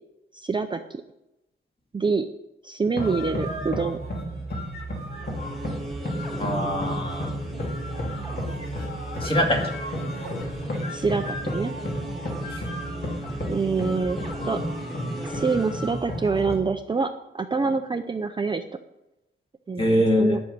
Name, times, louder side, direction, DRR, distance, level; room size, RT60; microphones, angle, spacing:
voice 1, 0.3-1.0 1.9-2.3 2.6-4.0 10.9-11.7 13.5-14.2 14.5-14.6 15.3-18.6 19.7-20.4, right 4 dB, 20° right, 6 dB, 0.5 m, -26 dB
sound 1, 2.9-16.6, equal, 50° left, 2.9 m, -32 dB
sound 2, 5.1-16.1, right 1 dB, ahead, 1.9 m, -37 dB
voice 2, 6.4-7.3 9.2-9.6 12.5-12.6 19.8-20.4, equal, 25° left, 0 dB, 2.3 m, -23 dB
11.5 x 6.4 x 8.8 m, 0.91 s
wide cardioid pair, 160°, 21 cm